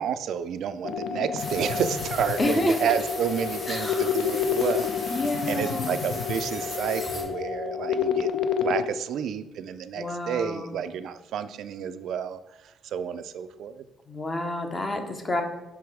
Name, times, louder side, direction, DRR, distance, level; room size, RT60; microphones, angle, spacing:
voice 1, 0.0-8.3 8.6-13.8, right 8 dB, 60° right, 11 dB, 0.3 m, -30 dB
sound 1, 0.8-8.8, left 7 dB, 65° left, 0.4 m, -29 dB
sound 2, 1.4-7.2, left 1 dB, 45° left, 2.4 m, -38 dB
voice 2, 2.4-2.9 3.7-4.1 5.1-6.2 9.9-10.7 14.1-15.4, left 1 dB, 20° left, 6 dB, 0.7 m, -29 dB
5.8 x 4.7 x 4.8 m, 1.1 s
cardioid pair, 175°, 0 cm